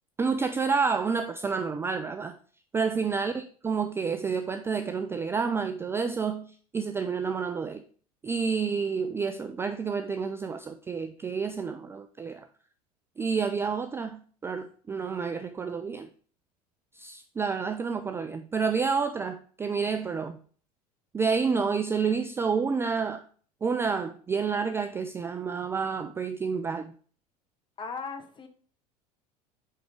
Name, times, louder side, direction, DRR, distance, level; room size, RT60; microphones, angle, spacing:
voice 1, 0.2-2.4 2.7-7.8 8.2-12.5 13.2-16.1 16.9-20.4 21.1-23.2 23.6-26.9, right 5 dB, 10° right, 0.3 m, -29 dB
voice 2, 27.8-28.5, left 5 dB, 25° left, 1.0 m, -38 dB
8.2 x 3.5 x 3.6 m
figure-of-eight pair, 75°, 20 cm